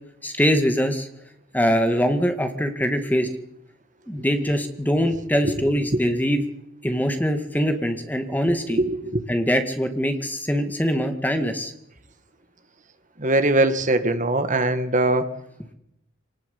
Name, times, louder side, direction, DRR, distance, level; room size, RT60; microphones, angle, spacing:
voice 1, 0.2-1.1 1.5-3.3 4.1-6.4 6.8-8.8 9.3-11.7, equal, 10° left, 7 dB, 2.2 m, -23 dB
voice 2, 8.7-9.2 13.2-15.3, right 2 dB, 40° right, 9 dB, 1.9 m, -21 dB
24.5 x 19.5 x 8.5 m, 0.82 s
head